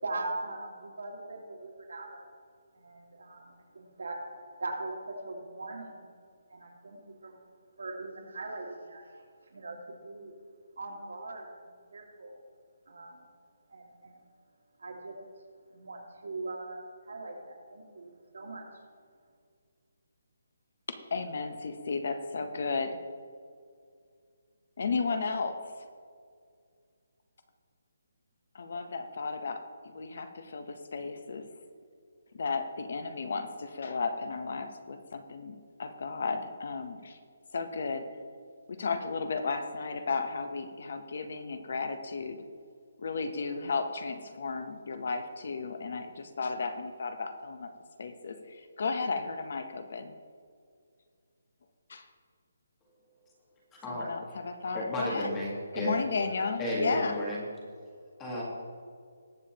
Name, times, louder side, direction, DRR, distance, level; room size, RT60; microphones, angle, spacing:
voice 1, 0.0-2.3 2.7-4.2 4.6-6.1 6.5-7.4 7.8-9.1 9.5-10.3 10.8-12.4 12.9-13.3 13.7-14.2 14.8-15.2 15.7-16.8 17.1-18.7, right 2 dB, 80° right, -2 dB, 2.7 m, -40 dB
voice 2, 20.9-23.0 24.8-25.6 28.5-31.5 32.3-37.2 37.5-38.1 38.7-42.4 43.0-47.7 48.0-50.1 51.9-52.1 53.9-55.3 55.7-57.1, left 4 dB, 45° left, 8 dB, 0.8 m, -34 dB
voice 3, 53.7-54.1 54.7-56.0 56.6-57.5 58.2-58.4, equal, 10° left, -4 dB, 1.4 m, -33 dB
20.0 x 7.1 x 2.9 m, 2.2 s
hypercardioid pair, 180°, 0 cm